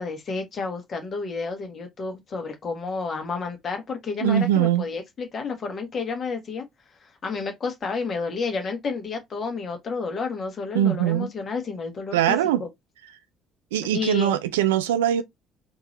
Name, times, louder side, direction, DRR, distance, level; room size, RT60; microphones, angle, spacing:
voice 1, 0.0-6.6 7.0-12.7 13.9-14.4, left 4 dB, 45° left, 1.3 m, -31 dB
voice 2, 4.2-4.8 10.7-11.3 12.1-12.6 13.7-15.2, right 11 dB, 75° right, 0.4 m, -21 dB
3.7 x 2.7 x 3.0 m
figure-of-eight pair, 50°, 0 cm